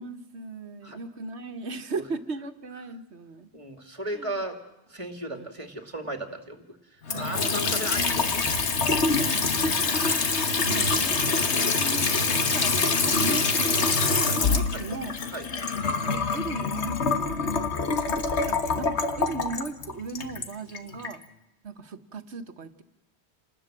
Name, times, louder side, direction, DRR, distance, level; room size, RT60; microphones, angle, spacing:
voice 1, 0.0-3.5 4.1-4.4 5.3-5.5 7.1-7.7 9.1-10.0 10.6-15.2 16.0-17.6 18.0-21.2 21.6-22.8, right 3 dB, 75° right, 8 dB, 1.6 m, -37 dB
voice 2, 3.5-4.6 4.9-6.8 7.2-8.4 14.7-14.8 15.3-15.5, right 1 dB, 30° right, 6 dB, 2.5 m, -35 dB
Water tap faucet / Sink (filling or washing) / Trickle dribble, 7.0-21.2, left 4 dB, 80° left, 1.7 m, -25 dB
28.0 x 20.0 x 7.5 m, 0.99 s
omnidirectional pair, 1.1 m